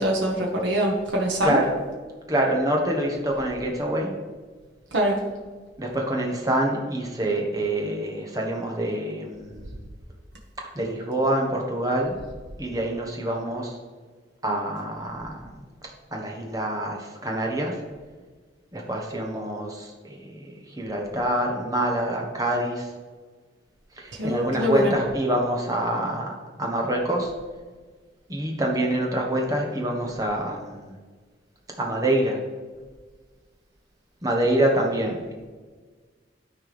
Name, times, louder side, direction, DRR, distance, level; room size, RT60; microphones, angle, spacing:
voice 1, 0.0-1.6 4.9-5.2 24.2-24.9, equal, 85° right, -1 dB, 1.2 m, -23 dB
voice 2, 1.4-1.7 2.3-4.1 5.8-9.7 10.7-12.2 12.6-13.8 14.4-15.5 16.1-17.7 18.7-22.9 24.0-26.3 26.6-27.3 28.3-30.9 31.8-32.4 34.2-35.2, right 1 dB, 20° right, 0 dB, 1.2 m, -26 dB
12.5 x 4.5 x 3.4 m, 1.4 s
head